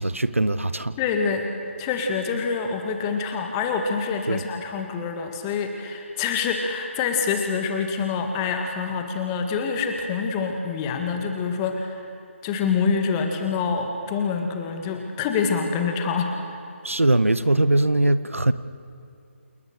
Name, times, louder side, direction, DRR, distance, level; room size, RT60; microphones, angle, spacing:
voice 1, 0.0-0.9 4.3-4.4 16.8-18.5, right 1 dB, 80° right, 14 dB, 1.0 m, -21 dB
voice 2, 1.0-1.5 1.8-12.1 12.4-16.6, left 5 dB, 15° left, 4 dB, 1.9 m, -26 dB
28.0 x 20.0 x 6.8 m, 2.6 s
figure-of-eight pair, 150°, 7 cm